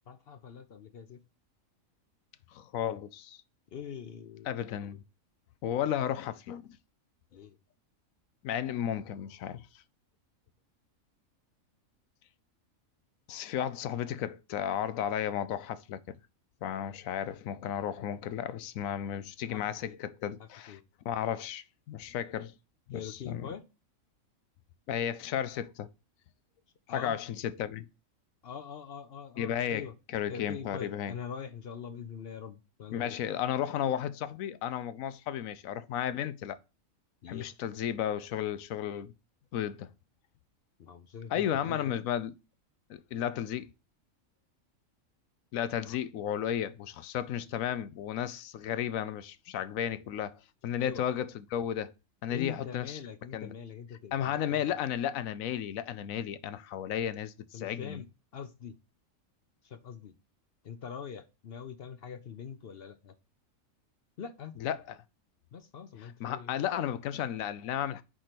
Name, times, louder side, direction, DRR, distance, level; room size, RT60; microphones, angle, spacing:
voice 1, 0.1-1.2 3.7-4.5 4.8-5.0 7.3-7.6 19.5-20.0 20.4-20.8 22.9-23.6 26.9-27.2 28.4-29.9 30.3-33.2 37.2-37.5 40.8-41.9 45.8-46.0 50.8-51.1 52.3-54.6 57.5-58.1 58.3-58.8 59.6-60.1 60.6-63.1 64.2-64.5 65.5-66.6, left 7 dB, 55° left, 0.7 m, -43 dB
voice 2, 2.5-3.4 4.5-5.0 5.6-6.7 8.4-9.7 13.3-16.0 16.6-20.8 21.1-22.5 22.9-23.5 24.9-25.9 26.9-27.9 29.4-29.9 30.1-31.2 32.9-36.6 37.3-39.1 39.5-39.9 41.3-42.3 42.9-43.7 45.5-51.9 52.2-53.0 53.3-53.5 54.1-58.0 64.6-64.8 66.2-68.0, left 10 dB, 80° left, 1.0 m, -33 dB
4.9 x 4.5 x 5.9 m
omnidirectional pair, 1.4 m